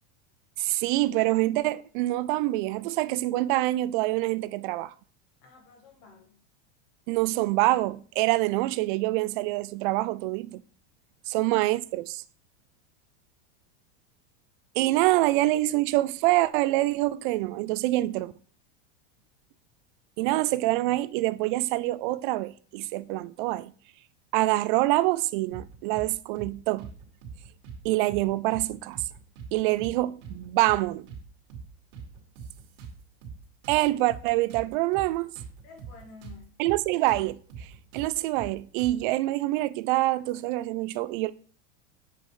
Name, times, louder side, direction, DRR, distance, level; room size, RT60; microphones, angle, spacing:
voice 1, 0.6-4.9 7.1-10.6 11.3-12.2 14.8-18.3 20.2-23.7 24.3-26.9 27.8-29.0 29.5-31.1 33.7-35.3 36.6-37.7 37.9-41.3, right 18 dB, 50° right, 0.4 m, -26 dB
voice 2, 5.4-6.4 11.4-11.7 35.6-36.6, left 5 dB, 45° left, 1.7 m, -51 dB
sound 1, 25.5-26.1 26.3-26.5 26.8-27.8 28.1-28.2 28.5-29.5 29.8-29.9 30.2-31.2 31.5-31.7 31.9-33.4 33.6-36.4 36.6-36.8 37.1-39.1, right 5 dB, 65° right, 2.4 m, -43 dB
7.7 x 5.2 x 3.2 m
supercardioid pair, 160°, 34 cm